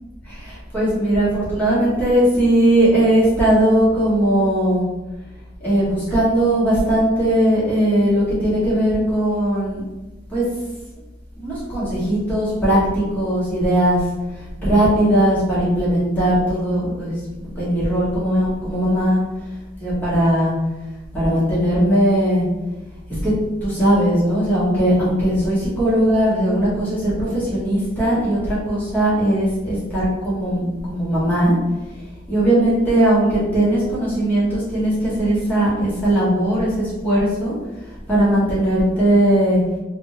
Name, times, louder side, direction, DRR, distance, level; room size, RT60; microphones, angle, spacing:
voice 1, 0.2-4.9 5.6-9.8 10.3-10.4 11.4-14.0 14.6-19.2 19.8-20.5 21.1-22.4 23.2-23.3 23.6-31.6 32.3-37.5 38.1-39.6, right 1 dB, 10° left, -10 dB, 1.5 m, -19 dB
3.4 x 2.6 x 3.1 m, 1.1 s
head